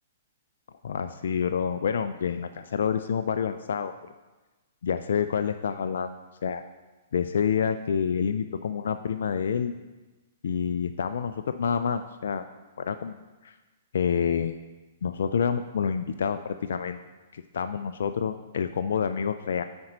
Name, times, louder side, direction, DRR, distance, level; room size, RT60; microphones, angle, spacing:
voice 1, 0.8-3.9 4.8-6.1 6.4-6.6 7.1-9.7 10.4-12.4 12.8-13.2 13.4-13.5 13.9-14.6 15.0-17.0 17.3-19.6, left 7 dB, 65° left, 9 dB, 0.3 m, -28 dB
9.5 x 4.4 x 5.0 m, 1.2 s
figure-of-eight pair, 115°, 0 cm